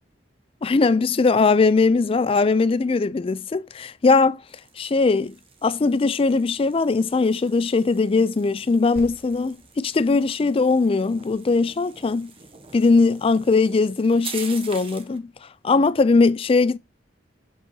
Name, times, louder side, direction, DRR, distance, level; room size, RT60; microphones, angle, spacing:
voice 1, 0.6-4.4 4.8-5.3 5.6-12.3 12.7-15.3 15.6-16.8, left 4 dB, 30° left, 0.4 m, -20 dB
sound 1, 4.5-15.2, right 5 dB, 30° right, 1.1 m, -44 dB
sound 2, 9.0-12.9 13.1-13.3, left 1 dB, 5° right, 3.1 m, -48 dB
5.9 x 5.5 x 4.4 m
head